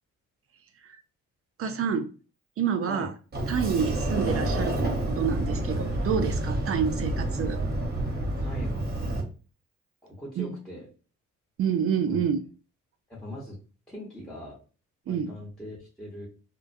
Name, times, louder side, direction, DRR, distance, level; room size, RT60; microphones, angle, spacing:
voice 1, 1.6-2.1 2.6-3.1 3.5-7.6 10.4-10.6 11.6-12.4 15.1-15.3, right 7 dB, 50° right, 8 dB, 0.4 m, -28 dB
Sliding door, 3.3-9.2, right 1 dB, 30° right, 0.9 m, -28 dB
voice 2, 8.4-9.3 10.0-10.9 12.1-12.2 13.1-13.6 13.9-14.6 15.1-16.3, equal, ahead, -4 dB, 0.9 m, -40 dB
2.3 x 2.1 x 2.5 m, 0.35 s
cardioid pair, 90°, 30 cm